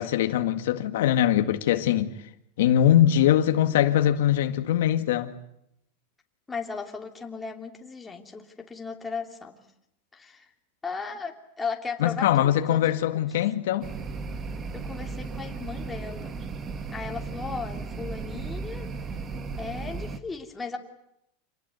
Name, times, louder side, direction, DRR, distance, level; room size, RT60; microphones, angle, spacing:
voice 1, 0.0-2.1 2.6-5.4 12.0-13.9, left 11 dB, 85° left, 1.9 m, -22 dB
voice 2, 6.5-9.5 10.1-10.5 10.8-13.2 14.7-16.3 16.9-18.9 19.6-20.8, left 4 dB, 10° left, 3.0 m, -36 dB
sound 1, 13.8-20.2, right 4 dB, 25° right, 1.7 m, -35 dB
28.0 x 19.0 x 9.4 m
supercardioid pair, 140°, 0 cm